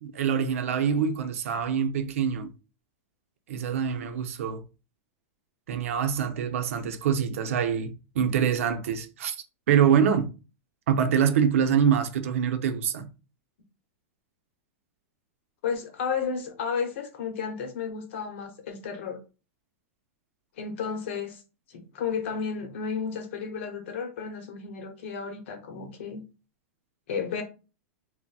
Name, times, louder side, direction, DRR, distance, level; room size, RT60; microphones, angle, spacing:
voice 1, 0.0-2.5 3.5-4.6 5.7-9.4 9.7-10.3 10.9-13.1, right 8 dB, 75° right, 0.6 m, -25 dB
voice 2, 15.6-19.2 20.6-21.4 21.7-26.2 27.1-27.4, left 6 dB, 60° left, 0.8 m, -32 dB
3.9 x 2.1 x 2.3 m
supercardioid pair, 160°, 7 cm